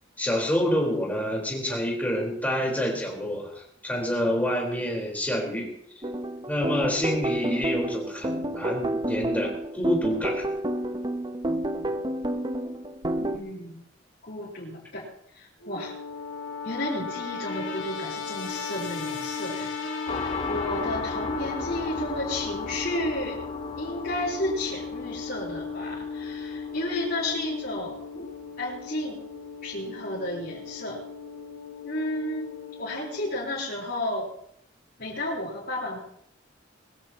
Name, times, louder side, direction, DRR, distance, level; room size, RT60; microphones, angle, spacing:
voice 1, 0.2-5.7 6.5-10.5, equal, 10° left, -1 dB, 4.3 m, -27 dB
sound 1, 6.0-13.4, right 1 dB, 25° right, 0.8 m, -29 dB
voice 2, 13.2-13.9 14.2-15.0 15.3-15.9 16.6-19.7 20.2-23.4 23.8-28.0 28.6-29.2 29.6-31.0 31.8-32.5 32.8-34.3 35.0-36.0, left 1 dB, 50° left, -7 dB, 4.3 m, -32 dB
sound 2, 15.6-33.3, left 5 dB, 85° left, 2.9 m, -36 dB
sound 3, 20.1-29.3, left 3 dB, 35° left, 0.9 m, -38 dB
21.5 x 15.0 x 3.0 m, 0.72 s
head